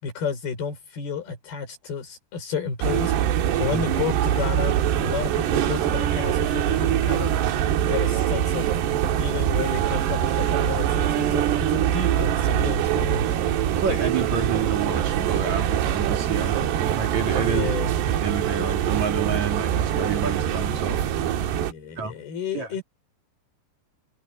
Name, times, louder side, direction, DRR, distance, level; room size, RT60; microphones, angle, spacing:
voice 1, 0.0-7.4 7.9-8.7 9.2-13.4 16.5-16.6 17.3-17.9 21.6-22.8, left 6 dB, 70° left, 7.4 m, -31 dB
sound 1, 2.8-21.7, right 10 dB, 85° right, 3.5 m, -23 dB
voice 2, 13.8-17.8 18.2-21.0 22.0-22.1 22.5-22.7, right 5 dB, 45° right, 4.3 m, -29 dB
omnidirectional pair, 4.7 m